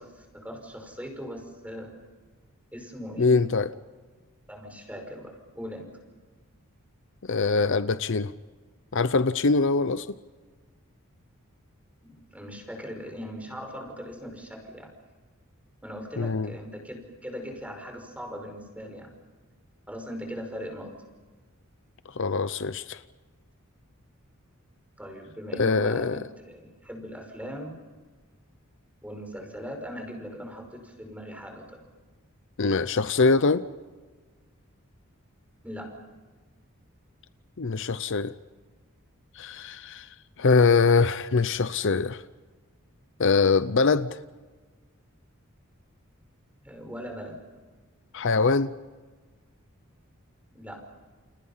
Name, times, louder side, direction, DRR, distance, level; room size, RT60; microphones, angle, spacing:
voice 1, 0.0-1.9 2.7-3.5 4.5-5.9 12.0-14.9 15.8-19.1 19.9-21.0 25.0-27.8 29.0-31.8 35.6-35.9 46.6-47.4 50.5-50.8, equal, 5° right, 5.3 m, -39 dB
voice 2, 3.2-3.7 7.3-8.3 8.9-10.1 16.2-16.5 22.2-23.0 25.6-26.2 32.6-33.6 37.6-38.3 39.4-40.1 40.4-42.2 43.2-44.2 48.1-48.7, left 4 dB, 60° left, 0.7 m, -23 dB
30.0 x 29.5 x 5.7 m
head